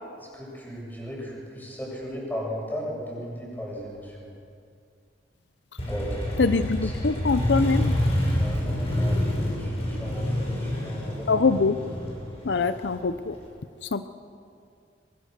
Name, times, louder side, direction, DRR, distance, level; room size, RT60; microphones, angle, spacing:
voice 1, 0.3-4.3 5.8-6.5 6.8-6.9 8.3-11.4, equal, 10° left, -4 dB, 7.5 m, -36 dB
Motorcycle, 5.8-13.4, left 1 dB, 35° left, 5.9 m, -27 dB
voice 2, 6.4-7.9 11.3-11.8 12.4-13.4 13.8-14.1, left 4 dB, 75° left, 11 dB, 0.6 m, -23 dB
22.5 x 22.5 x 6.7 m, 2.4 s
head